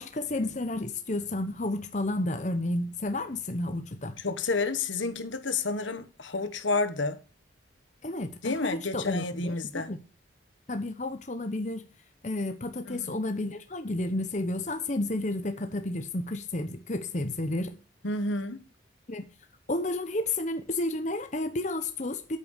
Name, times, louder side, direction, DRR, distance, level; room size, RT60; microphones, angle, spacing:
voice 1, 0.0-4.2 8.0-10.0 10.7-11.9 12.2-17.8 19.1-19.2 19.7-22.4, left 2 dB, 40° left, 0.9 m, -31 dB
voice 2, 4.2-7.2 8.4-9.9 12.9-13.2 18.0-18.6, left 3 dB, 80° left, 1.3 m, -30 dB
8.8 x 8.3 x 6.6 m
head